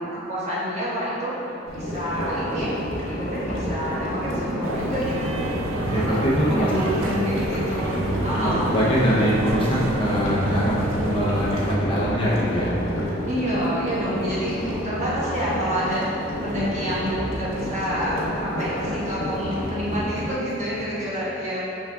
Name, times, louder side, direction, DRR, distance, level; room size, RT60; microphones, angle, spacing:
voice 1, 0.0-1.3 1.7-2.8 3.0-5.3 5.9-6.2 6.5-9.1 13.3-16.1 16.4-21.6, equal, 35° right, -9 dB, 1.1 m, -28 dB
sound 1, 1.7-20.3, left 1 dB, 75° left, 1.1 m, -31 dB
sound 2, 2.2-20.9, right 1 dB, 10° right, 0.7 m, -37 dB
sound 3, 4.6-11.8, right 2 dB, 75° right, 0.4 m, -30 dB
voice 2, 5.7-6.7 8.3-12.7, equal, 25° left, -8 dB, 0.7 m, -23 dB
6.2 x 3.5 x 2.2 m, 3.0 s
head